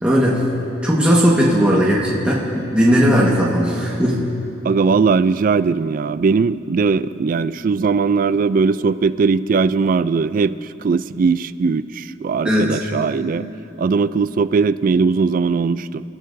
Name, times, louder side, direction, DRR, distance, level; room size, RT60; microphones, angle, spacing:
voice 1, 0.0-0.4 0.8-4.2 12.4-12.8, equal, 5° right, -6 dB, 1.4 m, -17 dB
voice 2, 4.6-13.5 13.8-16.0, right 4 dB, 45° right, 15 dB, 0.3 m, -19 dB
28.5 x 15.0 x 2.6 m, 2.9 s
head